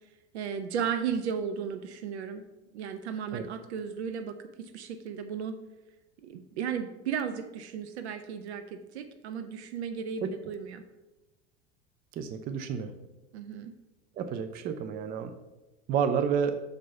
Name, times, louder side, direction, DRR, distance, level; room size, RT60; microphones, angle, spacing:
voice 1, 0.3-2.4 2.7-5.6 6.2-10.8 13.3-13.7, right 7 dB, 60° right, 8 dB, 0.6 m, -35 dB
voice 2, 12.2-12.9 14.2-15.3 15.9-16.6, right 7 dB, 25° right, 9 dB, 0.4 m, -30 dB
6.6 x 4.6 x 5.6 m, 1.1 s
figure-of-eight pair, 80°, 37 cm